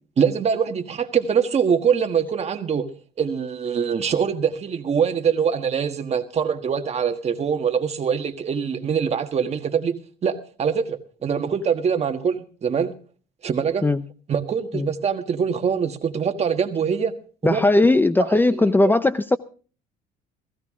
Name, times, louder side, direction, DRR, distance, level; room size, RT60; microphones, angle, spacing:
voice 1, 0.2-2.9 3.2-12.9 13.4-13.8 14.3-17.1 17.4-17.6 18.2-18.3, right 7 dB, 40° right, 7 dB, 1.6 m, -23 dB
voice 2, 17.4-19.4, left 2 dB, 10° left, 13 dB, 0.6 m, -18 dB
16.0 x 15.5 x 3.7 m, 0.39 s
cardioid pair, 110°, 17 cm